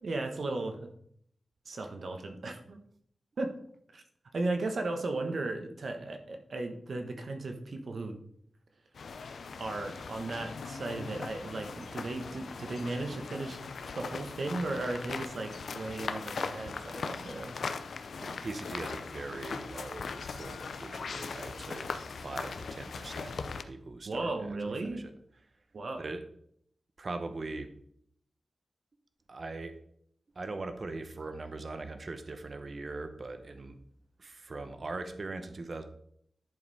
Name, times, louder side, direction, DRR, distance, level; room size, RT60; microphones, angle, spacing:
voice 1, 0.0-0.9 1.6-2.8 3.4-3.5 3.9-4.0 4.3-8.2 9.6-13.6 13.9-17.6 24.0-25.0 25.7-26.0, right 2 dB, 55° right, 5 dB, 1.1 m, -36 dB
sound 1, 8.9-23.6, left 5 dB, 80° left, 0.6 m, -40 dB
voice 2, 18.2-21.9 22.2-24.6 24.8-25.1 25.9-26.2 27.0-27.7 29.3-29.7 30.3-33.8 34.2-35.8, right 3 dB, 40° right, 8 dB, 0.8 m, -41 dB
10.5 x 4.8 x 4.8 m, 0.68 s
wide cardioid pair, 160°, 0 cm